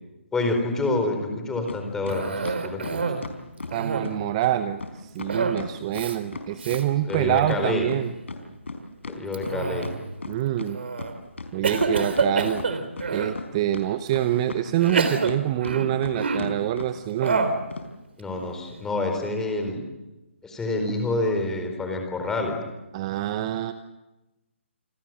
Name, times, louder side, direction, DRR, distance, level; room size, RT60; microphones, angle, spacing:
voice 1, 0.3-3.0 7.0-7.9 9.1-9.9 18.2-19.8 20.4-22.6, left 2 dB, 5° left, 4 dB, 4.6 m, -27 dB
sound 1, 1.7-1.8 2.1-3.8 4.0-4.1 4.4-4.5 4.8-4.9 5.2-7.6 7.9-10.7 11.0-11.1 11.4-12.3 12.6-13.5 13.7-15.4 15.6-16.1 16.4-16.5 16.8-16.9 17.3-17.4 17.7-17.9, left 3 dB, 70° left, 4.5 m, -36 dB
Cough, 2.1-3.3 3.6-4.3 5.3-5.7 5.9-6.2 6.6-6.8 7.4-7.8 9.3-10.1 10.7-11.1 11.6-13.4 14.1-14.2 14.8-16.6 17.2-17.7, right 4 dB, 60° right, 3.4 m, -27 dB
voice 2, 3.7-8.1 10.3-10.8 11.5-12.6 13.1-17.4 22.9-23.7, right 13 dB, 25° right, 11 dB, 0.9 m, -26 dB
29.0 x 21.5 x 7.7 m, 1.0 s
figure-of-eight pair, 145°, 7 cm